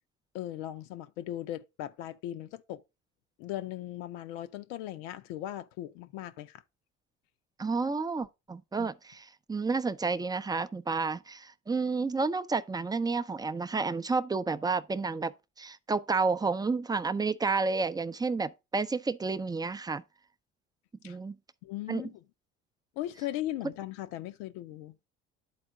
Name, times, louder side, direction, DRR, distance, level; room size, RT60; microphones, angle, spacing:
voice 1, 0.3-2.8 3.4-6.6 8.8-8.9 21.0-21.2 21.6-22.2 23.0-25.0, left 13 dB, 70° left, 0.7 m, -38 dB
voice 2, 7.6-20.0 21.0-21.3 21.9-22.1, right 4 dB, 10° right, 0.5 m, -31 dB
11.0 x 4.3 x 3.7 m
hypercardioid pair, 60°, 35 cm